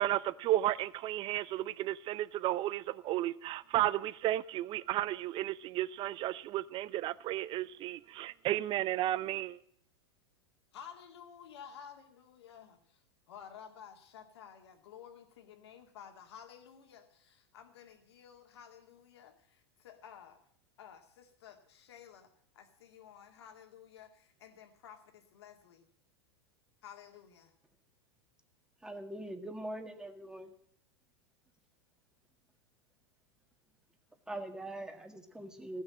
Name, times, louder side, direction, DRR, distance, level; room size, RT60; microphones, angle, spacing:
voice 1, 0.0-9.6, right 14 dB, 40° right, 0.6 m, -33 dB
voice 2, 10.7-13.0 13.3-20.4 20.8-22.3 22.5-25.9 26.8-27.5, left 8 dB, 75° left, 2.2 m, -53 dB
voice 3, 28.8-30.5 34.3-35.8, right 1 dB, 5° right, 1.6 m, -42 dB
15.0 x 6.5 x 8.6 m
hypercardioid pair, 110°, 14 cm